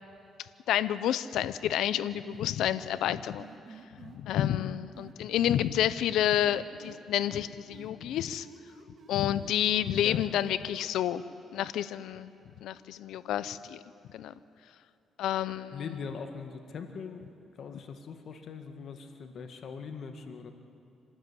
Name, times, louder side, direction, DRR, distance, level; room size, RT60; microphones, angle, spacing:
voice 1, 0.7-3.5 4.1-8.5 9.1-11.2 11.5-12.3 12.6-13.8 14.1-14.3 15.2-15.8, left 11 dB, 85° left, 15 dB, 0.6 m, -29 dB
sound 1, 1.9-4.2 4.9-7.0 7.3-10.9, right 5 dB, 55° right, 2.5 m, -51 dB
voice 2, 15.7-17.3 17.6-20.5, left 5 dB, 60° left, 6 dB, 1.8 m, -41 dB
26.5 x 13.0 x 9.7 m, 2.7 s
cardioid pair, 90°, 0 cm